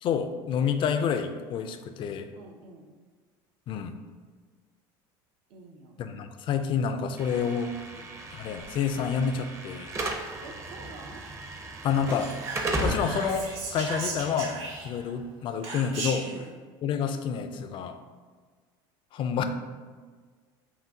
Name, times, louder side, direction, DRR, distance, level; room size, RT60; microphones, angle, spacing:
voice 1, 0.0-2.3 3.7-4.0 6.0-7.8 8.3-9.9 11.8-12.4 12.8-16.3 16.8-18.0 19.1-19.4, left 7 dB, 45° left, 8 dB, 0.3 m, -29 dB
voice 2, 2.3-2.9 5.5-6.0 7.9-8.1 10.4-11.2 16.2-16.6, right 3 dB, 75° right, 1 dB, 0.6 m, -48 dB
Slam / Alarm, 7.2-15.3, right 1 dB, 25° right, 0.5 m, -36 dB
Whispering, 12.1-15.1 15.6-16.4, right 3 dB, 55° right, 1.1 m, -36 dB
5.6 x 2.3 x 2.7 m, 1.5 s
supercardioid pair, 105°, 12 cm